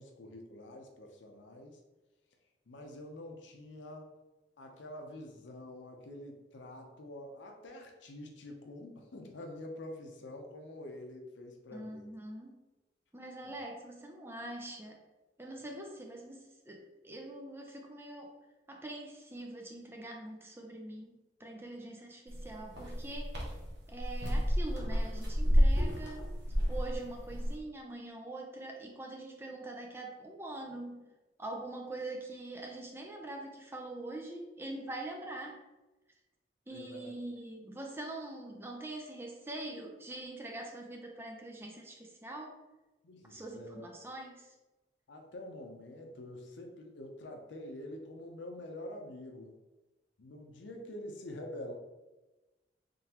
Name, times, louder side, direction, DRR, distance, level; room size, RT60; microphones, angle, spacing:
voice 1, 0.0-1.8 2.7-4.2 4.6-12.1 13.4-13.6 36.7-37.1 43.0-43.9 45.1-49.5 50.2-51.7, left 1 dB, 90° left, 3 dB, 0.6 m, -46 dB
voice 2, 11.7-12.6 13.1-15.0 15.4-18.3 18.7-23.4 23.9-26.3 26.7-31.1 31.4-35.6 36.7-42.5 43.3-44.5, right 2 dB, 15° right, 0 dB, 0.5 m, -44 dB
sound 1, 22.3-27.5, equal, 70° right, 1.0 m, -30 dB
3.8 x 3.3 x 2.9 m, 1.1 s
head